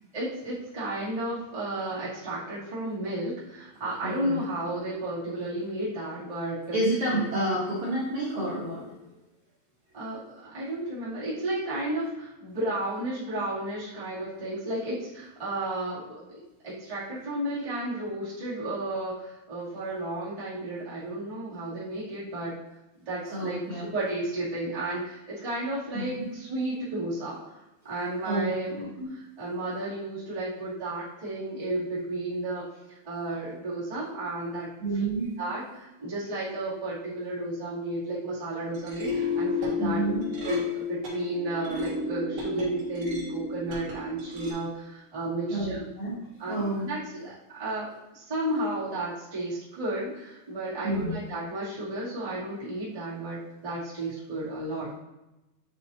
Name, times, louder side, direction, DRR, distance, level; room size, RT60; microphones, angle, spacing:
voice 1, 0.1-6.8 7.1-7.2 9.9-16.2 16.6-22.5 23.0-27.5 27.8-35.0 35.4-40.0 40.4-45.8 46.4-54.9, right 1 dB, 20° right, -10 dB, 0.8 m, -33 dB
voice 2, 4.0-4.4 6.7-8.9 23.3-23.9 25.9-26.3 28.3-28.5 29.0-29.1 34.8-35.3 39.8-40.2 45.5-46.1 46.5-46.9 50.8-51.2, right 1 dB, 65° right, -8 dB, 2.0 m, -29 dB
sound 1, 38.6-44.5, left 5 dB, 80° right, 1.2 m, -32 dB
9.0 x 4.2 x 2.8 m, 1.0 s
omnidirectional pair, 4.9 m